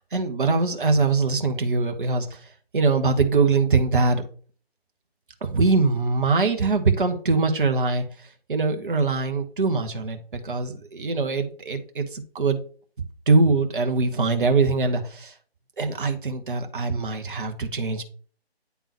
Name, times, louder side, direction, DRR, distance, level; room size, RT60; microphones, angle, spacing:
voice 1, 0.1-4.2 5.4-12.6 13.3-15.3 15.8-18.0, right 4 dB, 55° right, 6 dB, 1.1 m, -23 dB
9.3 x 3.6 x 3.0 m, 0.43 s
figure-of-eight pair, 150°, 32 cm